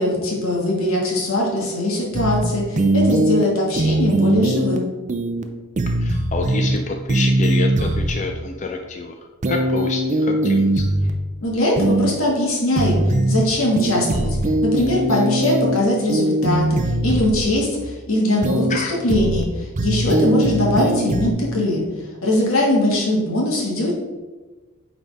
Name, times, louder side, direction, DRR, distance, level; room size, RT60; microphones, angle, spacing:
voice 1, 0.0-4.9 11.4-14.4 14.6-21.8 22.2-23.9, left 1 dB, 85° left, -3 dB, 2.0 m, -21 dB
sound 1, 2.1-2.4 2.8-3.4 3.8-4.8 5.1-5.4 5.8-6.8 7.1-8.1 9.4-11.1 11.8-12.1 12.8-13.4 13.8-15.8 16.1-17.4 18.4-18.8 19.1-19.4 19.8-21.3, right 1 dB, 35° right, 0.5 m, -20 dB
voice 2, 6.0-9.2 9.5-10.8 18.7-19.0, left 3 dB, 35° left, 3 dB, 0.5 m, -27 dB
8.9 x 4.0 x 3.5 m, 1.2 s
head